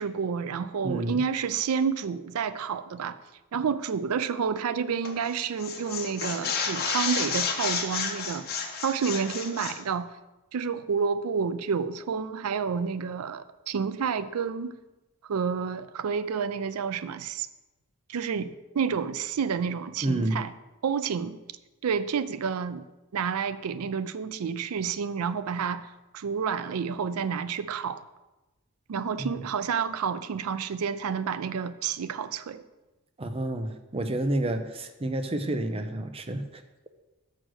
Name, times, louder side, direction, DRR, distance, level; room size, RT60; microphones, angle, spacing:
voice 1, 0.0-3.2 3.5-8.5 8.8-10.1 10.5-14.8 15.2-17.5 18.1-20.5 20.8-21.4 21.8-22.8 23.1-28.0 28.9-32.6, right 6 dB, 85° right, 14 dB, 0.4 m, -29 dB
voice 2, 0.8-1.2 20.0-20.4 29.2-29.4 33.2-36.6, right 1 dB, 25° right, 8 dB, 0.6 m, -29 dB
sound 1, 5.0-5.3 5.6-9.8, left 5 dB, 45° left, 1.1 m, -31 dB
6.4 x 6.3 x 6.2 m, 1.1 s
head